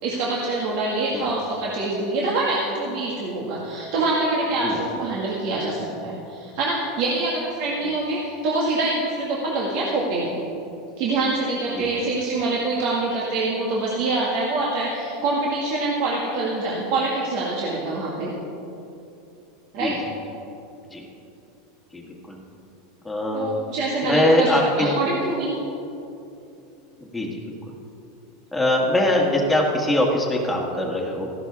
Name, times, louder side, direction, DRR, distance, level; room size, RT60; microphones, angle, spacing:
voice 1, 0.0-10.4 11.0-18.3 19.7-20.0 23.3-24.5 24.8-25.6, right 2 dB, 60° right, -4 dB, 1.9 m, -25 dB
voice 2, 23.0-23.5 24.0-25.0 27.0-27.4 28.5-31.3, left 1 dB, 5° left, -2 dB, 1.7 m, -22 dB
15.0 x 11.5 x 3.6 m, 2.8 s
supercardioid pair, 135°, 0 cm